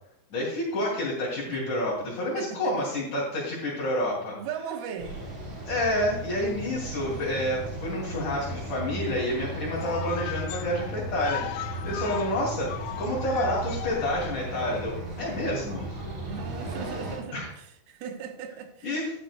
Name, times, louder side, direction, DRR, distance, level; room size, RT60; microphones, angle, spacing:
voice 1, 0.3-4.4 5.7-15.9 17.3-17.5 18.8-19.1, left 1 dB, 55° left, 3.9 m, -29 dB
voice 2, 1.5-1.8 2.4-2.7 4.4-5.2 11.8-12.1 16.2-19.0, right 7 dB, 80° right, 3.0 m, -38 dB
sound 1, 5.0-17.2, right 2 dB, 40° right, 4.5 m, -36 dB
sound 2, 9.8-14.8, left 14 dB, 90° left, 1.9 m, -38 dB
16.0 x 10.0 x 2.3 m
omnidirectional pair, 4.5 m